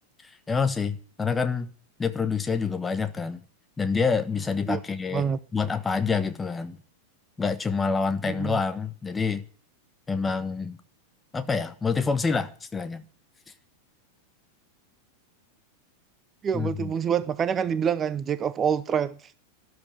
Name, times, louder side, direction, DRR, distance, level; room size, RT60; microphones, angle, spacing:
voice 1, 0.2-1.7 2.0-3.4 3.8-6.8 7.4-9.4 10.1-10.8 11.3-13.0 16.5-16.9, left 5 dB, 15° left, 1.3 m, -27 dB
voice 2, 16.4-19.3, right 7 dB, 25° right, 0.7 m, -26 dB
13.0 x 11.0 x 8.2 m
figure-of-eight pair, 90°, 0 cm